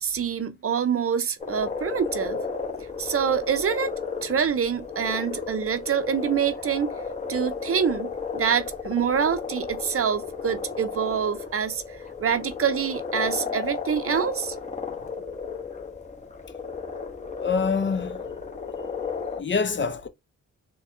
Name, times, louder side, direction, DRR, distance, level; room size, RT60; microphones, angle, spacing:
voice 1, 0.0-2.4 3.0-6.9 7.3-11.8 12.2-14.6, right 7 dB, 50° right, 0.6 m, -26 dB
sound 1, 1.4-19.4, left 5 dB, 25° left, 1.0 m, -34 dB
voice 2, 17.4-18.2 19.4-20.1, left 5 dB, 40° left, 0.6 m, -25 dB
4.2 x 2.2 x 2.6 m
cardioid pair, 55°, 30 cm